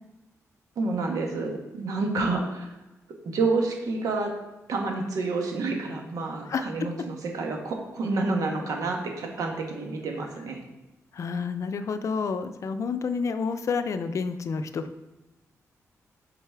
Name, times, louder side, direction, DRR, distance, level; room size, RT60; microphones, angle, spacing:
voice 1, 0.8-2.6 3.3-4.3 4.7-10.6, right 3 dB, 85° right, 2 dB, 1.2 m, -29 dB
voice 2, 11.1-15.0, left 5 dB, 60° left, 10 dB, 0.5 m, -29 dB
7.9 x 4.0 x 3.4 m, 1.1 s
cardioid pair, 90°, 6 cm